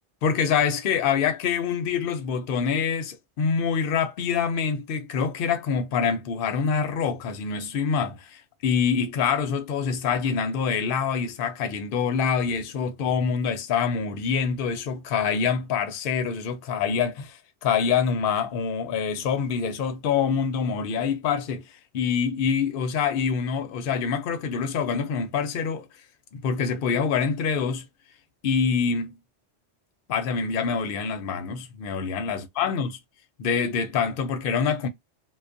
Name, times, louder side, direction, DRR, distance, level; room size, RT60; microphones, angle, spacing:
voice 1, 0.2-21.6 21.9-25.9 26.3-27.8 28.4-29.1 30.1-32.9 33.4-34.9, left 6 dB, 60° left, 0.7 m, -25 dB
2.2 x 2.2 x 2.5 m
omnidirectional pair, 1.2 m